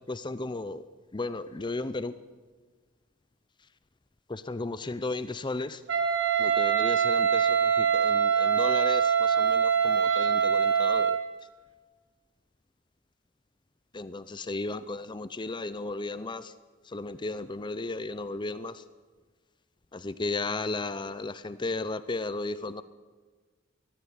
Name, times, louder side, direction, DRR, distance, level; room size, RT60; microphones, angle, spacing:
voice 1, 0.1-0.8 1.1-2.1 4.3-5.8 6.4-7.5 7.9-11.2 14.0-16.4 16.9-18.7 20.0-22.8, left 3 dB, 25° left, 14 dB, 0.6 m, -34 dB
Wind instrument woodwind instrument, 5.9-11.2, right 7 dB, 65° right, 2.5 m, -24 dB
19.5 x 15.0 x 9.7 m, 1.4 s
head